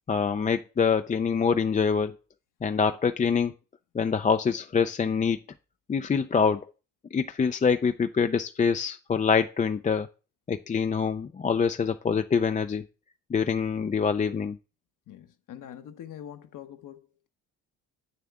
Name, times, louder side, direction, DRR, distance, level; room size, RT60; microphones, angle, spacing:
voice 1, 0.1-2.1 2.6-3.5 3.9-5.4 5.9-6.6 7.1-10.1 10.5-12.9 13.3-14.6, left 6 dB, 20° left, 0.5 m, -25 dB
voice 2, 15.1-17.3, left 10 dB, 60° left, 1.1 m, -44 dB
8.2 x 7.4 x 3.6 m
supercardioid pair, 80°, 36 cm